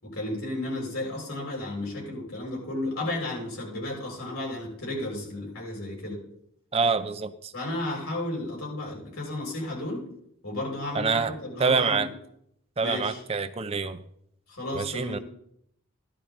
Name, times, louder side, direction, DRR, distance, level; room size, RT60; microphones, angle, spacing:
voice 1, 0.0-6.2 7.5-10.1 10.4-12.0 12.8-13.2 14.5-15.2, left 1 dB, 85° left, -3 dB, 7.2 m, -33 dB
voice 2, 6.7-7.5 10.9-11.3 11.6-12.1 12.8-14.0 14.7-15.2, right 4 dB, 25° right, 11 dB, 0.6 m, -26 dB
15.5 x 12.0 x 4.2 m, 0.74 s
head